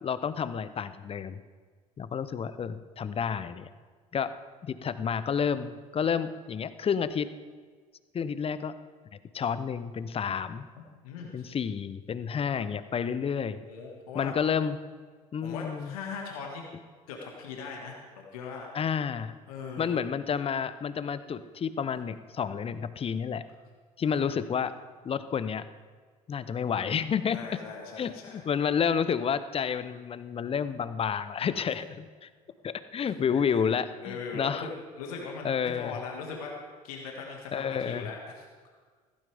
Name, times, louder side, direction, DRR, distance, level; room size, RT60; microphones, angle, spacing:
voice 1, 0.0-1.4 2.0-3.7 4.1-4.3 4.6-7.3 8.1-8.7 9.3-10.7 11.3-13.6 14.1-14.8 15.3-15.9 18.7-19.3 19.8-23.4 24.0-24.7 25.0-25.6 26.3-27.6 28.0-32.3 32.6-34.7 35.4-36.0 37.5-38.1, left 7 dB, 30° left, 14 dB, 0.7 m, -30 dB
voice 2, 11.0-11.5 13.6-14.3 15.4-16.6 17.1-18.7 19.5-19.9 24.0-24.4 27.3-28.4 33.3-33.6 34.0-34.7 35.0-36.6 36.8-38.4, left 5 dB, 70° left, 0 dB, 1.8 m, -40 dB
15.5 x 15.0 x 3.5 m, 1.5 s
figure-of-eight pair, 60°, 19 cm